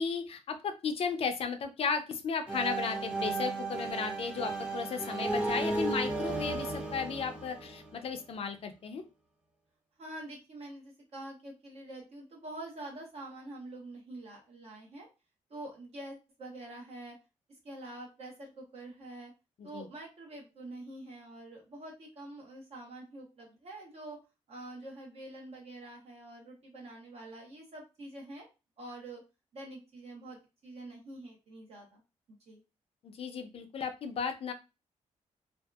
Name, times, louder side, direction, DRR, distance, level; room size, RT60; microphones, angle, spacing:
voice 1, 0.0-9.0 19.7-19.9 33.0-34.5, left 5 dB, 55° left, 7 dB, 0.5 m, -35 dB
sound 1, 2.5-8.2, right 2 dB, 10° right, 0.6 m, -34 dB
voice 2, 10.0-15.1 15.5-17.2 17.5-19.3 19.6-24.2 24.5-28.5 28.8-29.2 29.5-32.0 32.3-32.6, right 1 dB, 60° right, -1 dB, 0.9 m, -46 dB
2.6 x 2.4 x 2.3 m, 0.28 s
cardioid pair, 120°, 12 cm